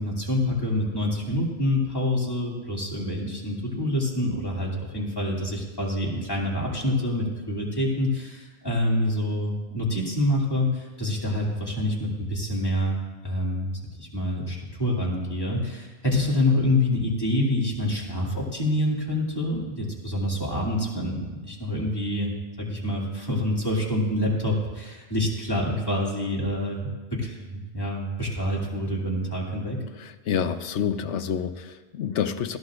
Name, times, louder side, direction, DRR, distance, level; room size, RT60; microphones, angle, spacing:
voice 1, 0.0-13.7 14.0-22.3 22.6-29.8, left 1 dB, 20° left, -5 dB, 2.7 m, -26 dB
voice 2, 30.0-32.6, left 8 dB, 80° left, 10 dB, 1.0 m, -28 dB
19.5 x 14.0 x 2.5 m, 1.3 s
omnidirectional pair, 1.2 m